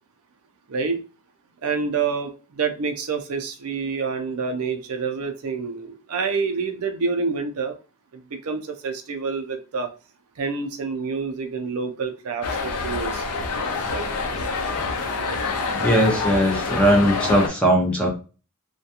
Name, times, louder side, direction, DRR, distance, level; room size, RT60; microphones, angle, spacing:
voice 1, 0.7-1.0 1.6-7.7 8.1-9.9 10.4-13.2 13.9-14.1, right 5 dB, 75° right, 6 dB, 0.5 m, -27 dB
sound 1, 12.4-17.5, left 4 dB, 90° left, 0.5 m, -27 dB
voice 2, 15.8-18.1, equal, 5° left, 0 dB, 0.6 m, -19 dB
2.3 x 2.2 x 2.7 m, 0.33 s
head